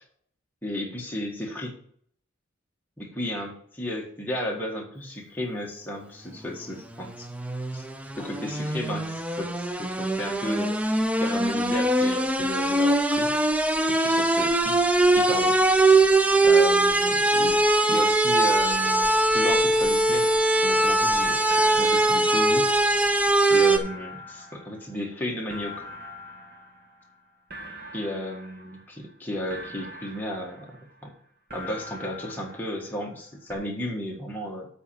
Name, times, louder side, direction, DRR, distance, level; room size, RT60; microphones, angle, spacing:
voice 1, 0.6-1.7 3.0-7.3 7.7-7.8 8.1-10.7 11.2-13.3 13.9-14.8 15.1-15.6 16.4-20.3 20.6-23.0 23.4-25.9 27.9-30.7 31.0-31.1 31.5-34.7, left 1 dB, 10° left, -1 dB, 1.6 m, -34 dB
sound 1, 7.0-23.8, right 2 dB, 5° right, 0.4 m, -21 dB
sound 2, 21.5-23.1 23.5-27.2 27.5-29.1 29.5-31.1 31.5-33.2 33.5-33.6, left 1 dB, 50° right, 1.6 m, -43 dB
8.2 x 4.2 x 7.0 m, 0.63 s
head